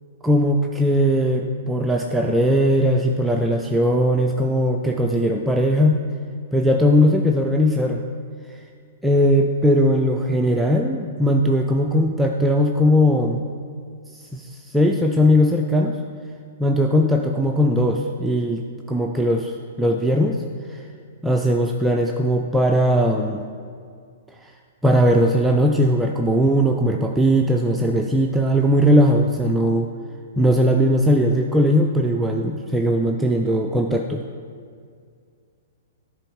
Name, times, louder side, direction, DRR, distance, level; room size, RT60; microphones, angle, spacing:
voice 1, 0.2-6.0 6.5-8.0 8.5-8.6 9.0-13.5 14.1-16.0 16.6-20.4 20.7-20.8 21.2-23.4 24.4-24.5 24.8-29.9 30.4-34.2, equal, 5° right, 1 dB, 0.4 m, -19 dB
10.5 x 4.1 x 4.7 m, 2.2 s
figure-of-eight pair, 110°, 0 cm